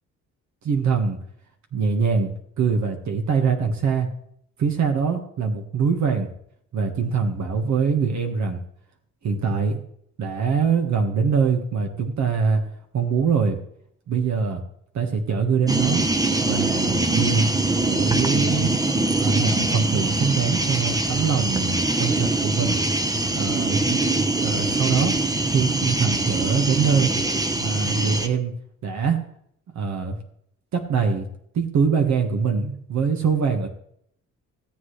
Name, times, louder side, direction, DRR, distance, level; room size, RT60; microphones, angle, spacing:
voice 1, 0.6-1.2 1.7-4.1 4.6-6.3 6.7-8.6 9.2-9.8 10.2-12.6 12.9-13.6 14.1-14.6 14.9-16.1 16.4-17.5 17.8-18.7 19.1-22.8 23.3-24.0 24.4-25.1 25.5-27.1 27.6-28.5 28.8-29.2 29.7-30.2 30.7-31.3 31.5-33.7, right 5 dB, 65° right, 3 dB, 1.7 m, -23 dB
sound 1, 15.7-28.3, right 2 dB, 10° right, 1.0 m, -23 dB
17.0 x 8.0 x 3.3 m, 0.69 s
cardioid pair, 90°, 30 cm